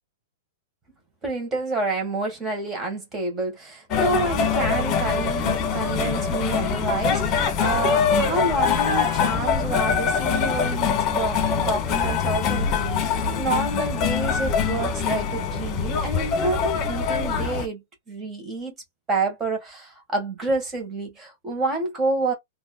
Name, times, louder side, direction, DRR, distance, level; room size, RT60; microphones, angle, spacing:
voice 1, 1.2-18.7 19.1-22.3, right 3 dB, 20° right, 1.9 m, -28 dB
sound 1, 3.9-17.7, left 6 dB, 35° left, 1.6 m, -23 dB
4.2 x 3.0 x 2.3 m
figure-of-eight pair, 105°, 0 cm